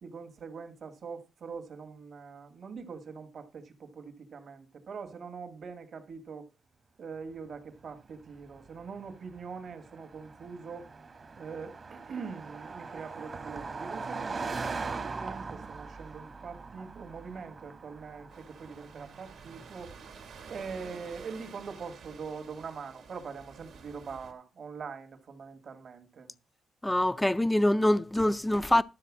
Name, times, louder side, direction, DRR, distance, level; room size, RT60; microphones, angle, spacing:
voice 1, 0.0-6.5 7.0-10.9 11.4-14.6 15.0-19.9 20.5-26.3, right 5 dB, 55° right, 2.0 m, -43 dB
Car passing by, 8.0-21.7, right 4 dB, 40° right, 1.4 m, -42 dB
sound 1, 18.3-24.3, right 5 dB, 85° right, 2.4 m, -50 dB
voice 2, 26.8-28.8, left 1 dB, 10° left, 0.5 m, -24 dB
13.0 x 4.4 x 7.4 m
cardioid pair, 115°, 0 cm